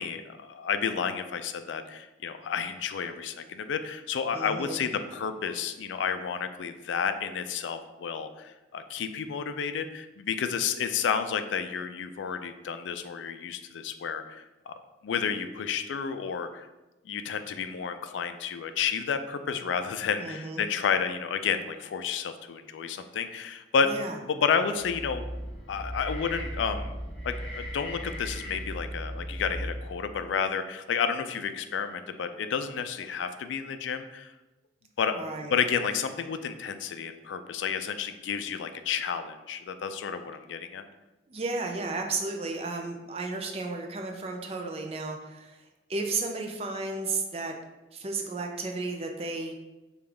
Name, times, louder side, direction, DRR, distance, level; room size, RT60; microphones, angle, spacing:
voice 1, 0.0-14.7 15.0-16.7 17.1-23.9 24.2-25.3 25.7-26.9 27.2-34.3 35.0-40.9, left 6 dB, 85° left, 9 dB, 0.3 m, -31 dB
voice 2, 4.3-4.8 20.2-20.6 23.9-24.2 35.2-35.5 41.3-45.6 45.9-47.5 47.9-49.6, right 3 dB, 35° right, 3 dB, 0.4 m, -33 dB
sound 1, 24.8-30.1, equal, 5° left, 1.1 m, -37 dB
5.2 x 2.4 x 3.3 m, 1.1 s
head